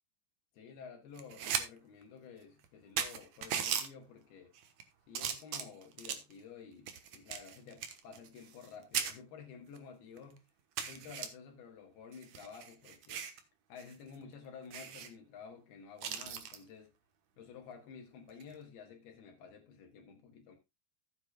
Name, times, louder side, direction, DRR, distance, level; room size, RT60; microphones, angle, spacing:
voice 1, 0.5-4.5 5.1-10.4 10.8-13.3 13.7-16.9 17.4-20.6, left 6 dB, 70° left, 3.4 m, -52 dB
sound 1, 1.2-1.7 2.0-2.1 2.6-2.7 3.0-3.9 4.6-4.8 5.1-6.3 6.9-8.7 8.9-9.1 9.8-9.9 10.2-10.3 10.8-11.3 12.1-13.4 13.8-13.9 14.2-14.3 14.7-15.1 16.0-16.6 18.3-18.5, right 8 dB, 65° right, 1.8 m, -37 dB
15.0 x 8.5 x 2.3 m
omnidirectional pair, 4.8 m